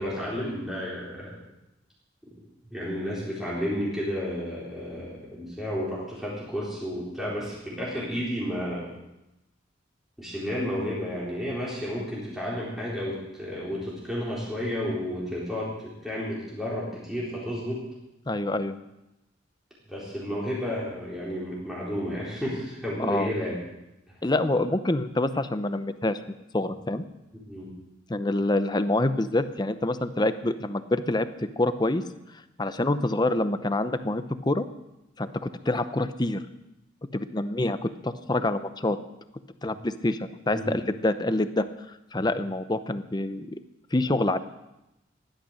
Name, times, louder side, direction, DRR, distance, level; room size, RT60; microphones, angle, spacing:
voice 1, 0.0-1.4 2.2-2.3 2.7-8.9 10.2-17.8 19.9-23.6 27.5-27.7 40.5-40.8, equal, ahead, -7 dB, 4.0 m, -32 dB
voice 2, 18.3-18.8 23.0-23.3 24.2-26.2 26.5-27.0 28.1-32.0 32.6-34.7 35.2-36.4 37.1-39.0 39.6-41.6 42.1-43.6 43.9-44.4, left 2 dB, 20° left, 11 dB, 0.7 m, -26 dB
16.0 x 11.5 x 6.5 m, 0.93 s
head